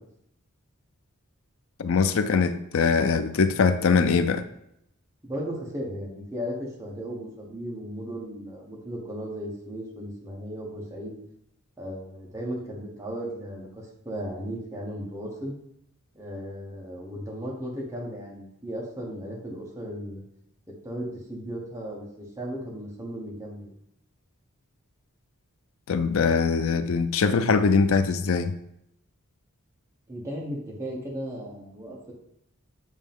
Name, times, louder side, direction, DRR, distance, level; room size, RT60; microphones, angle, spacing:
voice 1, 1.8-4.4 25.9-28.5, left 5 dB, 65° left, 11 dB, 0.5 m, -22 dB
voice 2, 5.2-11.1 11.8-15.5 16.1-20.2 20.8-23.7 30.1-32.1, equal, 15° right, -4 dB, 1.4 m, -36 dB
8.2 x 3.2 x 3.7 m, 0.77 s
head